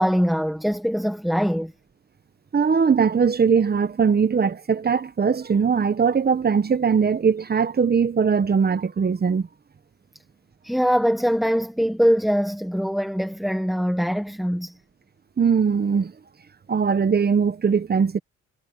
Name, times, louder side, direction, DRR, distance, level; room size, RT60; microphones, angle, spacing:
voice 1, 0.0-1.7 10.6-14.8, equal, ahead, 1.3 m, -22 dB
voice 2, 2.5-9.5 15.4-16.1 16.7-18.2, right 6 dB, 30° right, 1.1 m, -20 dB
cardioid pair, 90°, 30 cm